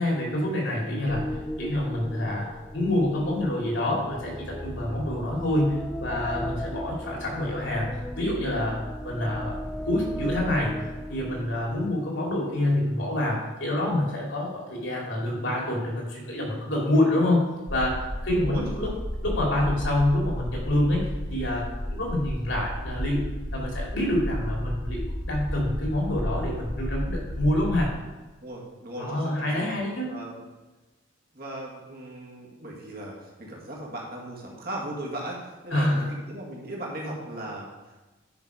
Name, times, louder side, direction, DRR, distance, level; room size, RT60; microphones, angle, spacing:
voice 1, 0.0-9.6 9.8-18.9 19.2-23.3 23.5-27.9 29.0-30.2 35.7-36.1, left 1 dB, 65° left, -2 dB, 2.8 m, -27 dB
sound 1, 1.1-11.9, equal, 5° left, 0.5 m, -37 dB
sound 2, 17.7-27.9, equal, 35° left, 2.0 m, -32 dB
voice 2, 28.4-29.6 30.1-30.4 31.3-37.7, right 1 dB, 45° right, -2 dB, 2.1 m, -37 dB
9.8 x 5.9 x 4.9 m, 1.1 s
head